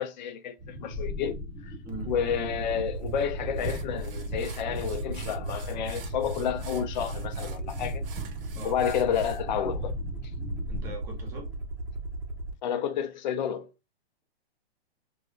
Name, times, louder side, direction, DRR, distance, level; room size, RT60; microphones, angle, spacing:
voice 1, 0.0-1.7 2.1-8.0 8.6-10.0 12.6-13.7, left 8 dB, 45° left, 0.5 m, -30 dB
sound 1, 0.6-11.0, equal, 15° left, 1.1 m, -39 dB
Aircraft, 1.9-12.5, right 1 dB, 85° right, 1.0 m, -36 dB
sound 2, 3.1-3.2 3.6-9.4, right 7 dB, 60° right, 0.6 m, -49 dB
voice 2, 10.7-11.6, right 1 dB, 10° right, 0.4 m, -42 dB
3.1 x 2.5 x 2.2 m
hypercardioid pair, 155°, 32 cm